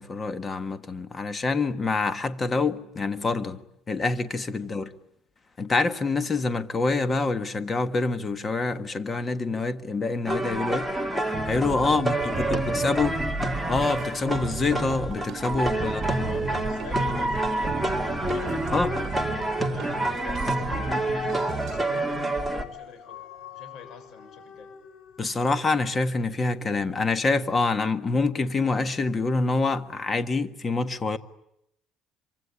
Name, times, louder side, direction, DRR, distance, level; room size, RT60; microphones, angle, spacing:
voice 1, 0.0-3.6 3.9-4.9 5.6-10.9 11.3-13.1 13.7-16.0 16.3-16.4 18.7-18.9 25.2-31.2, left 3 dB, 20° left, 1.5 m, -26 dB
sound 1, 10.2-22.6, right 1 dB, ahead, 2.4 m, -28 dB
sound 2, 11.3-21.8, right 6 dB, 40° right, 1.9 m, -36 dB
voice 2, 11.7-13.1 15.6-21.3 21.6-24.7, left 6 dB, 55° left, 6.9 m, -46 dB
Dog, 20.6-25.8 26.3-26.4, left 7 dB, 85° left, 2.8 m, -42 dB
26.0 x 24.5 x 8.5 m
cardioid pair, 150°, 0 cm